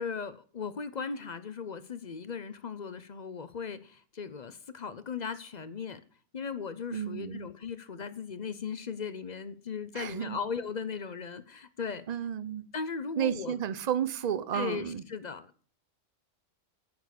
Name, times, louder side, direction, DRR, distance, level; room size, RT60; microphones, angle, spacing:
voice 1, 0.0-6.0 6.3-12.0 12.7-13.6 14.5-15.7, left 5 dB, 40° left, 0.7 m, -37 dB
voice 2, 6.9-7.5 9.9-10.4 12.1-12.6 13.2-15.0, right 9 dB, 40° right, 0.7 m, -32 dB
9.6 x 6.2 x 8.4 m
omnidirectional pair, 1.3 m